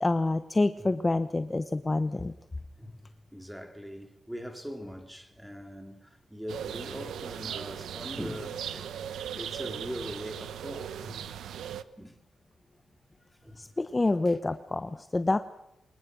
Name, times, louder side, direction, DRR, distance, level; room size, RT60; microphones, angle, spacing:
voice 1, 0.0-2.3 13.6-15.4, left 2 dB, 25° left, 0.9 m, -27 dB
voice 2, 2.8-11.3 12.0-12.2 13.4-13.6 14.2-14.4, equal, 5° right, 3.1 m, -41 dB
sound 1, 6.5-11.8, right 9 dB, 90° right, 1.0 m, -38 dB
25.5 x 20.0 x 6.3 m
cardioid pair, 80°, 0 cm